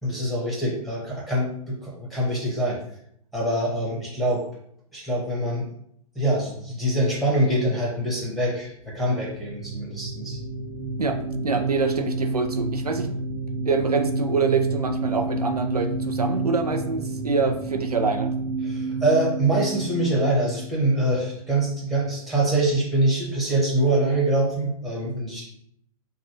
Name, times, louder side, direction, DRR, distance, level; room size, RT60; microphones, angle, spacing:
voice 1, 0.0-2.8 3.3-4.4 4.9-5.7 6.1-10.4 18.6-25.5, right 1 dB, ahead, -6 dB, 1.3 m, -24 dB
sound 1, 8.9-21.3, right 3 dB, 50° right, 0.7 m, -29 dB
voice 2, 11.0-13.1 13.6-18.3, right 4 dB, 90° right, 5 dB, 0.5 m, -25 dB
5.4 x 2.3 x 2.9 m, 0.70 s
figure-of-eight pair, 115°, 19 cm